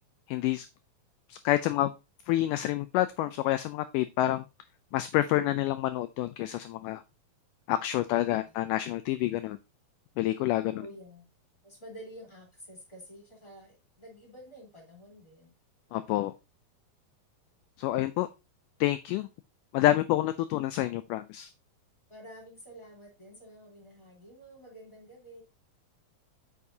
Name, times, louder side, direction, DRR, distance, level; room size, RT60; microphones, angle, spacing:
voice 1, 0.3-0.7 1.3-1.9 2.3-4.5 4.9-7.0 7.7-9.6 10.2-10.9 15.9-16.3 17.8-18.3 18.8-19.3 19.7-21.5, left 14 dB, 85° left, 12 dB, 1.8 m, -28 dB
voice 2, 8.2-8.5 10.8-11.3 11.6-15.5 22.1-25.4, equal, 10° left, -2 dB, 3.1 m, -49 dB
8.4 x 7.1 x 2.7 m, 0.26 s
omnidirectional pair, 4.3 m